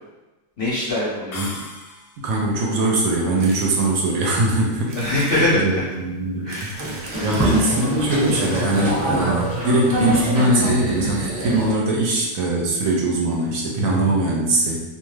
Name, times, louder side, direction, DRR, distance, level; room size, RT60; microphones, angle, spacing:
voice 1, 0.6-1.5 4.9-5.8 6.4-7.4, left 1 dB, 55° left, -8 dB, 0.6 m, -23 dB
sound 1, 1.3-2.4, left 2 dB, 90° left, 1.1 m, -36 dB
voice 2, 2.2-5.0 5.3-14.8, right 2 dB, 70° right, -2 dB, 0.9 m, -21 dB
sound 2, 3.4-3.7 4.2-4.3 4.9-5.5 6.2-7.6 8.4-8.5 8.7-8.8 9.0-9.1, right 2 dB, 90° right, 0.5 m, -40 dB
Boat Water vehicle, 6.8-11.7, right 1 dB, 15° right, 1.1 m, -24 dB
2.5 x 2.3 x 3.1 m, 1.1 s
omnidirectional pair, 1.6 m